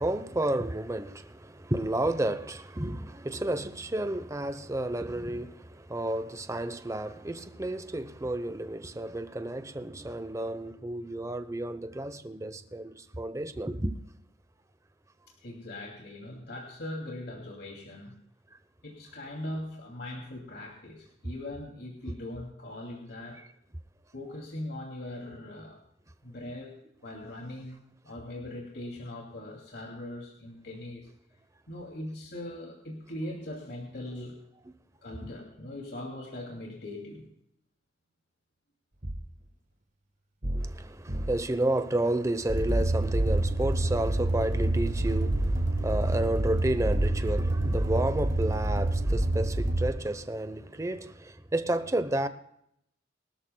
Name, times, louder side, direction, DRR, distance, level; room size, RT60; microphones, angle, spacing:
voice 1, 0.0-13.9 40.5-52.3, right 1 dB, 15° right, 0.8 m, -31 dB
voice 2, 15.4-18.2 18.8-23.4 24.1-25.8 26.2-26.7 27.0-31.1 31.7-34.4 35.0-37.3, left 1 dB, 60° left, 2.6 m, -40 dB
sound 1, 39.0-39.3 40.4-40.8 41.1-41.5 42.5-42.8 43.1-43.6 44.6-45.7 46.9-48.1 49.0-49.3, right 1 dB, 40° right, 1.4 m, -32 dB
sound 2, 42.6-49.9, right 1 dB, 75° right, 2.5 m, -27 dB
24.0 x 13.0 x 2.3 m
head